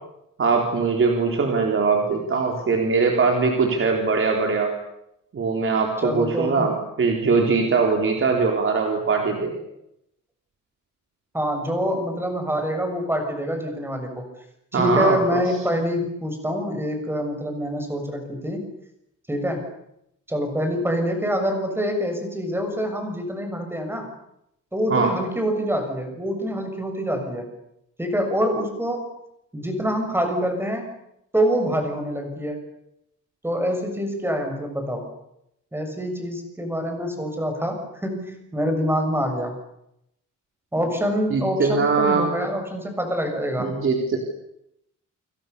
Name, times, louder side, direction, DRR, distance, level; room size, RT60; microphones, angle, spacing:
voice 1, 0.4-4.7 5.3-9.6 14.7-15.4 24.9-25.1 41.3-42.3 43.6-44.2, right 4 dB, 40° right, 2 dB, 4.3 m, -21 dB
voice 2, 6.0-6.7 11.3-14.3 14.7-18.7 19.3-19.6 20.3-24.1 24.7-27.5 28.0-29.1 29.5-30.9 31.3-32.6 33.4-35.1 35.7-39.5 40.7-43.7, equal, 5° right, 4 dB, 7.1 m, -26 dB
29.0 x 28.0 x 7.0 m, 0.80 s
wide cardioid pair, 175°, 33 cm